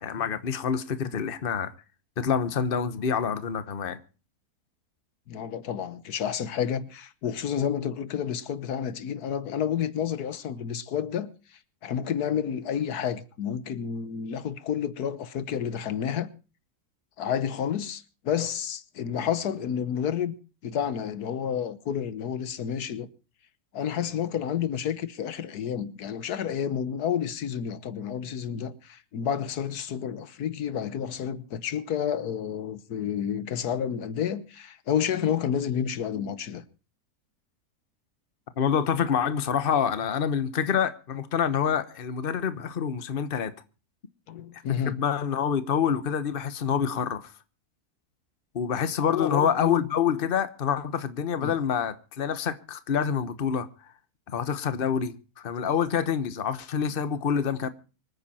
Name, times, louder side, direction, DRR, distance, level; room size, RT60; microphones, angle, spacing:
voice 1, 0.0-1.7 2.2-4.0 38.6-43.5 44.8-47.3 48.5-53.7 54.3-57.7, left 7 dB, 40° left, 1.2 m, -27 dB
voice 2, 5.3-16.3 17.2-20.3 20.6-23.1 23.7-36.6 44.3-45.0 49.1-49.9 51.4-51.5, left 8 dB, 90° left, 1.6 m, -30 dB
25.5 x 9.5 x 4.3 m
omnidirectional pair, 1.6 m